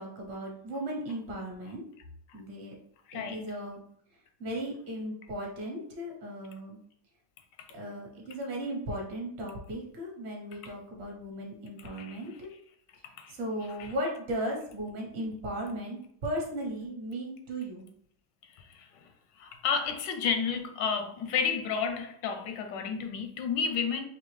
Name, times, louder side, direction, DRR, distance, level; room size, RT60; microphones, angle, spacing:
voice 1, 0.0-1.8 2.3-2.7 3.1-3.8 4.4-6.8 7.7-12.5 13.3-17.9, right 1 dB, 45° right, 1.2 m, -36 dB
voice 2, 3.1-3.5 10.6-10.7 11.8-12.2 13.2-13.3 13.6-13.9 19.4-24.0, left 6 dB, 90° left, 1.3 m, -31 dB
4.4 x 2.8 x 3.2 m
omnidirectional pair, 1.9 m